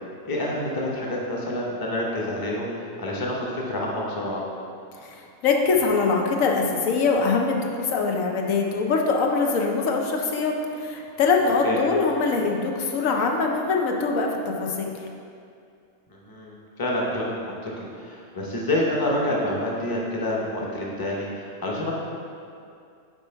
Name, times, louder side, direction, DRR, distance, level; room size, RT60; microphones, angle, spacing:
voice 1, 0.2-4.4 11.6-11.8 16.1-17.7 18.0-21.9, left 1 dB, 20° left, -4 dB, 0.9 m, -28 dB
voice 2, 5.4-14.9, left 4 dB, 85° left, 1 dB, 1.1 m, -23 dB
7.6 x 4.5 x 4.5 m, 2.5 s
omnidirectional pair, 1.4 m